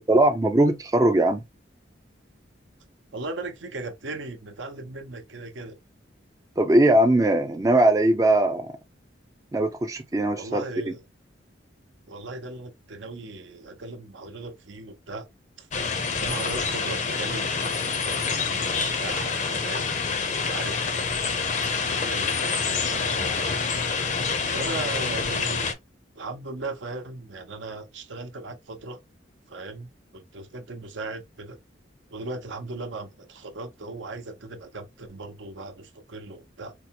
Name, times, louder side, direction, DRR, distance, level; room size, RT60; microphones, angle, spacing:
voice 1, 0.1-1.4 6.6-8.7 9.5-10.6, right 1 dB, 20° right, 0.4 m, -20 dB
voice 2, 3.1-5.8 10.4-11.0 12.1-15.3 15.6-15.7 16.2-19.9 20.4-20.8 21.3-21.5 22.1-23.6 24.5-25.7 26.1-29.0 29.5-31.6 32.1-36.7, right 3 dB, 75° right, 0.7 m, -37 dB
sound 1, 15.7-25.7, left 5 dB, 40° left, 0.5 m, -27 dB
4.4 x 2.2 x 2.8 m
head